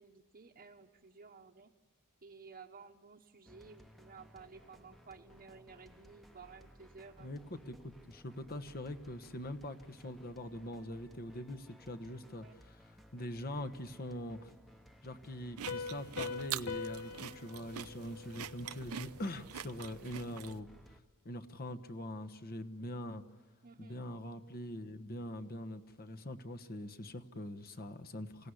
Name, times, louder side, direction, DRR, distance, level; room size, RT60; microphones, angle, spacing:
voice 1, 0.0-1.7 2.2-7.3 12.4-12.5 23.6-24.0, right 5 dB, 40° right, -1 dB, 1.1 m, -55 dB
sound 1, 3.5-21.0, equal, ahead, 1.0 m, -60 dB
voice 2, 7.2-14.5 15.0-20.7 21.2-23.2 23.8-28.5, left 1 dB, 45° left, 8 dB, 1.2 m, -43 dB
sound 2, 15.6-20.6, right 9 dB, 75° right, 0.7 m, -45 dB
Piano, 15.7-19.1, left 5 dB, 75° left, 1.0 m, -43 dB
27.0 x 17.5 x 9.8 m, 1.5 s
head